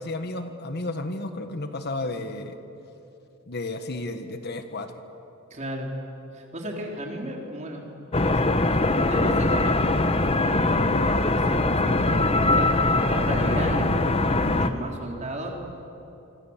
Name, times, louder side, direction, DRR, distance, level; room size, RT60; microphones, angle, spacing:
voice 1, 0.0-2.6 3.5-4.9, left 2 dB, 45° left, 7 dB, 1.4 m, -32 dB
voice 2, 5.5-5.9 6.3-8.6 8.9-11.0 11.4-15.6, right 1 dB, 30° right, 0 dB, 3.9 m, -33 dB
sound 1, 8.1-14.7, left 2 dB, 25° left, 0.9 m, -22 dB
26.5 x 26.0 x 7.4 m, 2.8 s
head